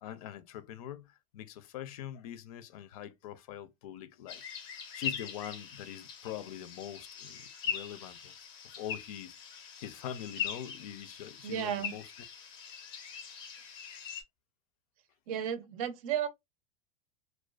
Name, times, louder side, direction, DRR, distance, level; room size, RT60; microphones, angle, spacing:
voice 1, 0.0-4.4 4.9-8.3 8.8-9.4 9.8-12.1, left 11 dB, 85° left, 0.5 m, -43 dB
sound 1, 4.3-14.2, left 8 dB, 25° left, 0.4 m, -41 dB
voice 2, 11.4-11.9 15.3-16.3, right 9 dB, 75° right, 0.5 m, -33 dB
2.5 x 2.2 x 2.3 m
supercardioid pair, 170°, 18 cm